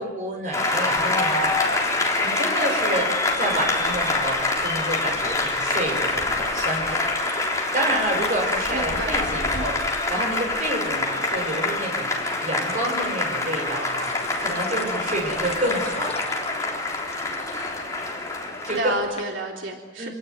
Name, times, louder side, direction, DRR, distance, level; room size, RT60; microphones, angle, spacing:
voice 1, 0.0-7.1 7.5-9.8 10.1-16.4 18.7-18.9 20.0-20.1, right 1 dB, 40° right, 2 dB, 5.8 m, -29 dB
Applause, 0.5-18.8, left 2 dB, 15° left, 3.8 m, -25 dB
sound 1, 0.9-19.2, left 2 dB, 35° left, 1.6 m, -41 dB
voice 2, 8.7-9.2 9.5-9.7 18.6-20.1, right 2 dB, 85° right, 0 dB, 3.5 m, -30 dB
27.0 x 19.0 x 9.4 m, 1.4 s
head